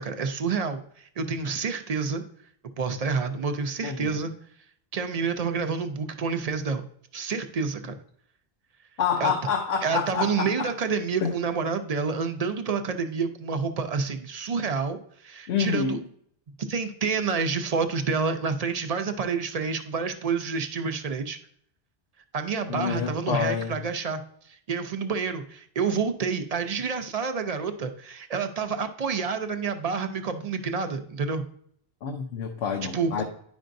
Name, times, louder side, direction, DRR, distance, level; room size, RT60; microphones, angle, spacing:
voice 1, 0.0-2.2 2.8-4.3 4.9-6.9 7.1-8.0 9.2-9.3 9.8-16.0 16.6-21.4 22.3-24.2 24.4-31.5 32.9-33.2, right 5 dB, 45° right, 0.5 m, -28 dB
voice 2, 9.0-10.7 11.2-11.3 15.5-16.0 22.7-23.8 32.0-33.2, left 7 dB, 85° left, 0.9 m, -27 dB
10.0 x 5.2 x 2.6 m
omnidirectional pair, 1.1 m